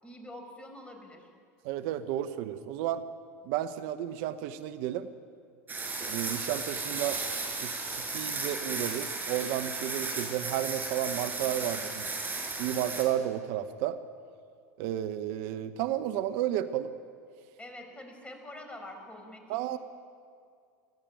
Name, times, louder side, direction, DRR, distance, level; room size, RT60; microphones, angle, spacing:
voice 1, 0.0-1.3 17.6-19.8, left 1 dB, 15° left, 4 dB, 5.6 m, -46 dB
voice 2, 1.6-3.0 3.5-5.1 6.0-7.2 7.6-12.0 12.6-14.0 14.8-16.9 19.5-19.8, right 11 dB, 60° right, 11 dB, 1.0 m, -32 dB
sound 1, 5.7-13.0, right 3 dB, 20° right, 6.2 m, -35 dB
25.0 x 16.0 x 9.2 m, 2.3 s
hypercardioid pair, 90°, 9 cm